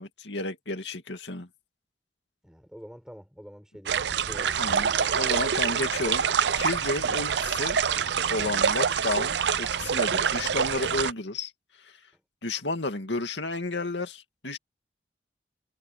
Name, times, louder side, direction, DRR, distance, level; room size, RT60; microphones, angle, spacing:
voice 1, 0.0-1.5 4.6-4.9 5.2-6.3 6.6-7.8 8.3-11.5 11.8-11.9 12.4-14.6, left 2 dB, 90° left, 2.4 m, -32 dB
voice 2, 2.4-5.8 7.0-7.3, equal, 5° right, 5.6 m, -47 dB
sound 1, 3.9-11.1, right 7 dB, 80° right, 0.6 m, -26 dB
head